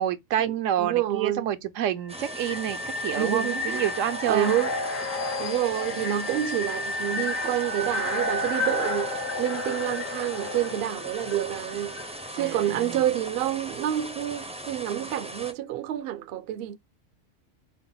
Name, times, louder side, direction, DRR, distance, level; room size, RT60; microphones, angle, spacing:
voice 1, 0.0-4.5 12.4-13.0, right 10 dB, 80° right, 1.0 m, -28 dB
voice 2, 0.8-1.5 3.2-3.8 4.3-4.7 5.4-12.0 12.3-16.8, right 12 dB, 65° right, 0.6 m, -28 dB
sound 1, 2.1-12.9, left 2 dB, 85° left, 1.5 m, -32 dB
sound 2, 2.1-15.5, right 1 dB, 10° right, 0.3 m, -39 dB
5.3 x 2.1 x 3.8 m
omnidirectional pair, 1.3 m